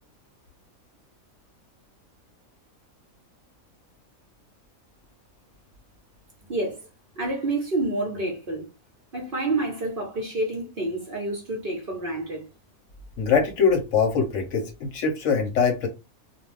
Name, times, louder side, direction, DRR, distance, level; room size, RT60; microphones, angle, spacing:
voice 1, 6.5-6.9 7.2-8.7 9.1-12.4, right 2 dB, 45° right, 0.9 m, -28 dB
voice 2, 13.2-15.9, left 6 dB, 65° left, 0.9 m, -23 dB
2.4 x 2.2 x 3.2 m
omnidirectional pair, 1.5 m